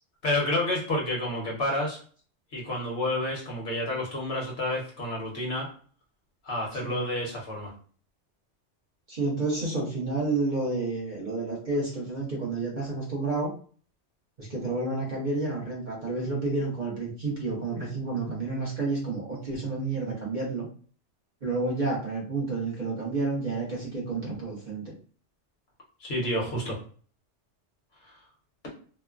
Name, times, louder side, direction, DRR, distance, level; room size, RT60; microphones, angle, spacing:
voice 1, 0.2-2.0 2.5-5.7 6.4-7.7 26.0-26.8, left 1 dB, 60° left, -2 dB, 1.2 m, -29 dB
voice 2, 9.1-13.5 14.4-20.7 21.4-24.9, right 3 dB, 45° right, -4 dB, 0.9 m, -30 dB
3.0 x 2.1 x 2.3 m, 0.43 s
omnidirectional pair, 1.2 m